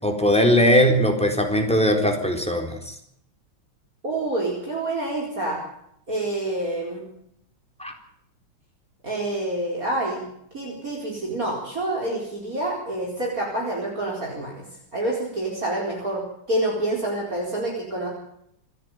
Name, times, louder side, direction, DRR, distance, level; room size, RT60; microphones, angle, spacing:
voice 1, 0.0-2.9 7.8-7.9, equal, 5° left, 2 dB, 4.0 m, -20 dB
voice 2, 4.0-5.6 6.1-7.1 9.0-10.3 10.5-14.7 14.9-18.1, right 1 dB, 40° right, -2 dB, 5.0 m, -27 dB
27.5 x 11.0 x 9.3 m, 0.72 s
omnidirectional pair, 2.3 m